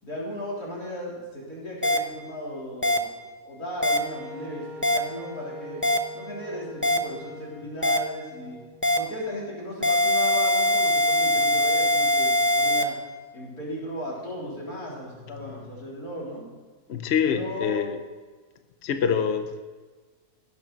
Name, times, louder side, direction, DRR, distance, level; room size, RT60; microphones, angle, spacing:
voice 1, 0.0-3.1 3.4-5.8 6.1-8.6 8.9-13.0 13.3-16.4 17.2-17.8, equal, 85° left, -5 dB, 4.1 m, -36 dB
sound 1, 1.8-2.0 2.8-3.0 3.8-4.0 4.8-5.0 5.8-6.0 6.8-7.0 7.8-8.0 8.8-9.0 9.8-12.8, left 1 dB, 15° left, 0.4 m, -21 dB
Wind instrument woodwind instrument, 3.8-9.6, left 1 dB, 90° right, 3.6 m, -43 dB
voice 2, 16.9-18.0 18.8-19.6, left 7 dB, 55° left, 8 dB, 0.9 m, -25 dB
16.5 x 6.5 x 5.9 m, 1.4 s
omnidirectional pair, 1.6 m